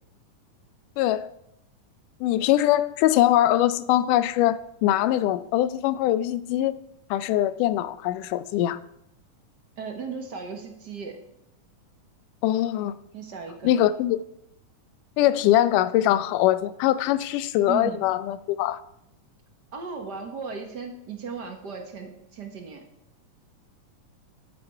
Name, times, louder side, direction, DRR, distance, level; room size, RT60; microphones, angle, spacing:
voice 1, 1.0-1.3 2.2-6.8 7.1-8.8 12.4-12.9 13.6-14.2 15.2-18.8, left 13 dB, 90° left, 15 dB, 2.2 m, -22 dB
voice 2, 9.8-11.2 13.1-13.9 17.7-18.1 19.7-22.8, right 5 dB, 50° right, 4 dB, 1.2 m, -36 dB
12.5 x 8.8 x 4.4 m, 0.82 s
omnidirectional pair, 3.6 m